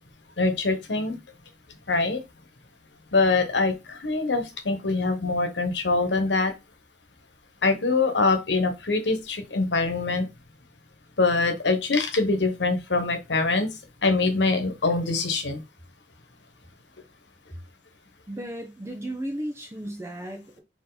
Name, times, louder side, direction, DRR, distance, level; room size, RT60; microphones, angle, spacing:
voice 1, 0.4-1.2 1.9-2.2 3.1-6.5 7.6-10.3 11.2-13.7 14.0-15.6, left 3 dB, 85° left, 1.1 m, -24 dB
voice 2, 18.3-20.6, right 1 dB, 15° right, 0.7 m, -34 dB
4.5 x 2.9 x 3.9 m
head